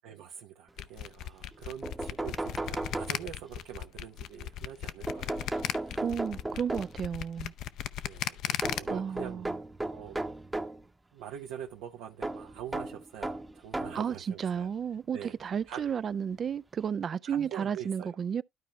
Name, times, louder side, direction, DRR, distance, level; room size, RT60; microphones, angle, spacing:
voice 1, 0.0-6.0 8.0-9.5 9.9-10.2 11.1-14.7 15.1-15.4 15.6-15.8 17.3-18.1, right 9 dB, 85° right, 1.0 m, -44 dB
sound 1, 0.8-8.8, left 12 dB, 70° left, 0.5 m, -36 dB
sound 2, 1.5-1.6 1.8-3.6 5.1-7.1 8.6-10.8 12.2-14.1 15.0-15.1 16.4-16.5 16.8-16.9, right 2 dB, 15° right, 0.9 m, -36 dB
voice 2, 6.0-7.5 8.9-9.5 13.9-18.4, right 7 dB, 45° right, 0.4 m, -33 dB
12.5 x 4.5 x 3.2 m
supercardioid pair, 80°, 0 cm